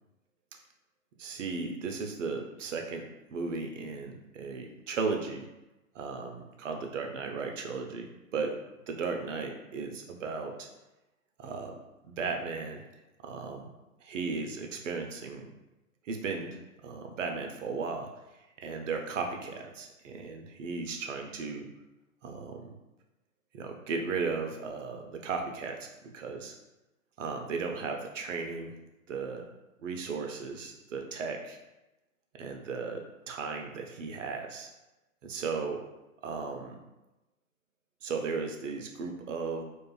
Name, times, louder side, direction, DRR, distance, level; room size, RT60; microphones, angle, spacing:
voice 1, 1.2-5.5 5.9-8.5 8.9-10.7 11.4-11.8 12.0-12.9 13.2-13.7 14.0-15.5 16.0-16.6 16.8-18.1 18.6-21.7 22.2-22.8 23.5-25.9 26.1-26.6 27.2-28.7 29.1-29.5 29.8-31.6 32.4-33.0 33.3-34.7 35.2-35.8 36.2-36.8 38.0-39.6, right 4 dB, 60° right, 3 dB, 0.5 m, -35 dB
2.4 x 2.2 x 2.3 m, 1.0 s
figure-of-eight pair, 130°, 43 cm